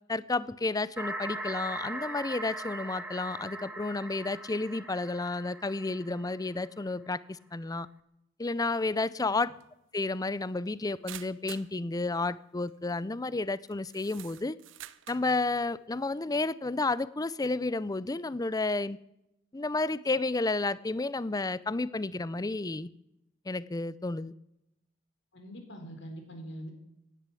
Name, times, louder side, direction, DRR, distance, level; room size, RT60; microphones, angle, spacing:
voice 1, 0.1-7.9 8.4-9.5 9.9-14.6 15.1-19.0 19.5-22.9 23.5-24.3, left 3 dB, 20° left, 18 dB, 0.5 m, -31 dB
sound 1, 1.0-6.7, right 1 dB, 10° right, 1.4 m, -40 dB
sound 2, 9.6-9.7 11.1-11.7 12.7-12.9 13.7-15.3, right 12 dB, 75° right, 0.7 m, -46 dB
voice 2, 25.3-26.7, equal, 65° left, 4 dB, 4.2 m, -43 dB
16.0 x 10.5 x 8.4 m, 0.83 s
head